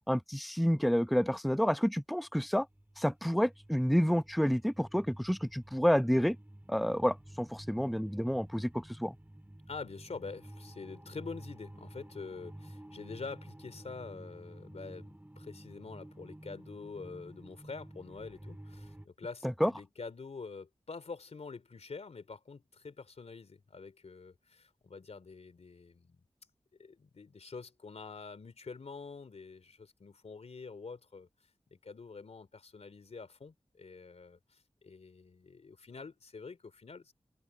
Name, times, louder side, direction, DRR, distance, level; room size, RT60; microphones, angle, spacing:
voice 1, 0.1-2.7 3.0-6.4 6.7-9.1 19.4-19.7, equal, ahead, 0.8 m, -29 dB
sound 1, 2.4-19.1, right 1 dB, 15° right, 4.1 m, -51 dB
voice 2, 9.7-26.2 26.8-31.3 31.7-37.1, left 4 dB, 80° left, 3.4 m, -46 dB
open air
wide cardioid pair, 50°, 11 cm